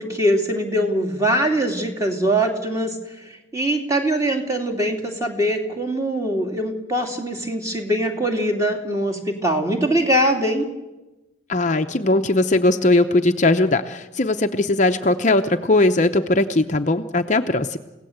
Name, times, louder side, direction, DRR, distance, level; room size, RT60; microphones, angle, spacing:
voice 1, 0.0-2.9 3.2-10.7, right 1 dB, 15° right, 2 dB, 2.7 m, -22 dB
voice 2, 11.5-17.8, left 2 dB, 40° left, 6 dB, 0.8 m, -19 dB
29.5 x 17.0 x 8.0 m, 1.1 s
head